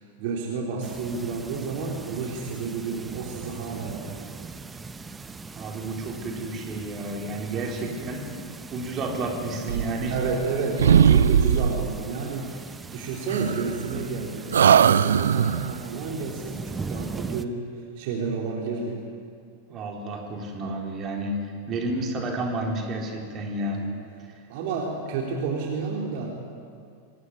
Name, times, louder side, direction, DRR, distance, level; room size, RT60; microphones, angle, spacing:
voice 1, 0.0-4.5 7.5-7.8 10.1-17.7 18.0-19.0 23.7-24.0 24.5-26.3, right 4 dB, 50° right, 0 dB, 3.5 m, -31 dB
sound 1, 0.8-17.4, right 4 dB, 15° right, 1.0 m, -40 dB
voice 2, 5.5-8.3 8.7-10.1 19.7-23.8 24.3-24.4, right 2 dB, 30° right, 1 dB, 4.0 m, -31 dB
sound 2, 9.6-10.5 10.8-12.0 13.3-14.1 14.5-15.8, right 8 dB, 65° right, 0.6 m, -20 dB
25.0 x 17.5 x 9.8 m, 2.3 s
figure-of-eight pair, 90°, 0 cm